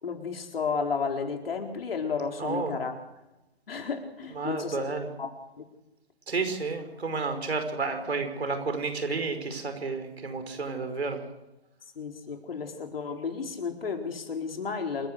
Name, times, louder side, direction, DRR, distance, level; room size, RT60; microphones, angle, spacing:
voice 1, 0.0-2.9 3.7-4.8 5.2-5.3 5.6-5.7 12.0-15.1, left 5 dB, 60° left, 3 dB, 4.3 m, -32 dB
voice 2, 2.4-2.8 4.3-5.1 6.3-11.2, right 4 dB, 75° right, 7 dB, 5.3 m, -31 dB
27.5 x 14.5 x 6.6 m, 0.95 s
hypercardioid pair, 150°, 32 cm